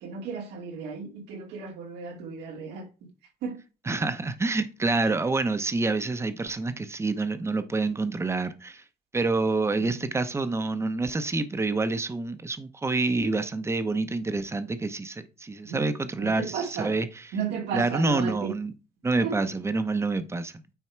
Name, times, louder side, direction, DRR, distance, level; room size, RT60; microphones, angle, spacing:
voice 1, 0.0-2.9 3.4-3.6 9.8-9.9 15.6-15.8 16.2-16.9 17.3-18.5 19.2-19.4, right 6 dB, 85° right, 2.1 m, -34 dB
voice 2, 3.8-8.8 9.1-17.4 17.7-18.7 19.0-20.5, right 3 dB, 15° right, 0.8 m, -27 dB
9.3 x 3.5 x 4.5 m
cardioid pair, 110°, 17 cm